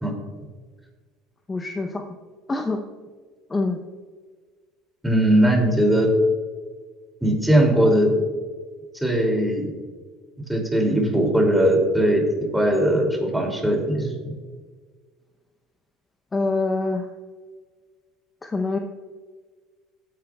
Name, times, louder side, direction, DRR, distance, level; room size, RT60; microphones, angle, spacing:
voice 1, 1.5-2.0 2.5-2.8 3.5-3.8 16.3-17.1 18.4-18.8, left 3 dB, 20° left, 4 dB, 0.7 m, -25 dB
voice 2, 5.0-6.1 7.2-8.1 9.0-9.7 10.5-12.2 12.5-14.1, right 1 dB, 5° right, 1 dB, 2.6 m, -19 dB
16.0 x 9.1 x 2.3 m, 1.5 s
supercardioid pair, 115°, 0 cm